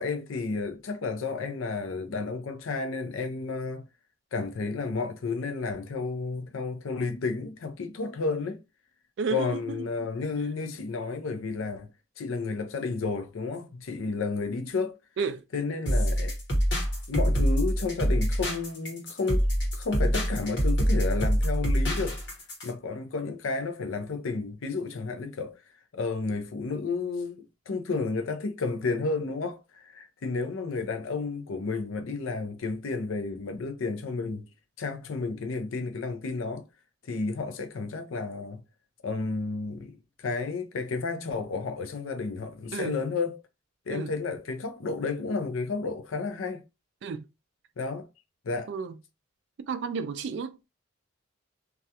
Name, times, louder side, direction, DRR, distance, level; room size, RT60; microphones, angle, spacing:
voice 1, 0.0-3.9 4.3-8.6 9.3-11.9 12.2-15.0 15.5-16.3 17.1-19.5 19.7-22.2 22.6-25.6 25.9-34.5 34.8-36.7 37.0-38.6 39.0-43.4 43.9-46.6 47.8-48.1 48.4-48.7, left 4 dB, 80° left, 0.4 m, -32 dB
voice 2, 9.2-9.8 15.2-15.4 42.7-43.0 43.9-44.2 47.0-47.2 48.7-48.9 49.7-50.7, right 5 dB, 60° right, 0.3 m, -32 dB
sound 1, 15.9-22.7, equal, 55° left, 1.1 m, -25 dB
2.3 x 2.2 x 2.7 m
head